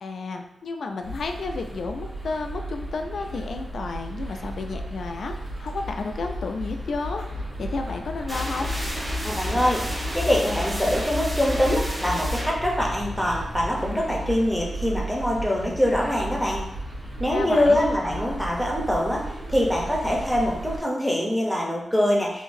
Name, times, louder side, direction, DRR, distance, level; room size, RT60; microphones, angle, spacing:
voice 1, 0.0-8.7 17.3-17.8, left 3 dB, 65° left, 5 dB, 0.3 m, -32 dB
sound 1, 1.0-20.8, right 1 dB, 45° right, 1.0 m, -34 dB
sound 2, 8.3-13.9, left 1 dB, 20° right, 1.0 m, -31 dB
voice 2, 9.2-16.6 17.2-22.4, left 1 dB, 5° left, -2 dB, 0.6 m, -24 dB
3.7 x 2.6 x 2.6 m, 0.84 s
wide cardioid pair, 135°, 0 cm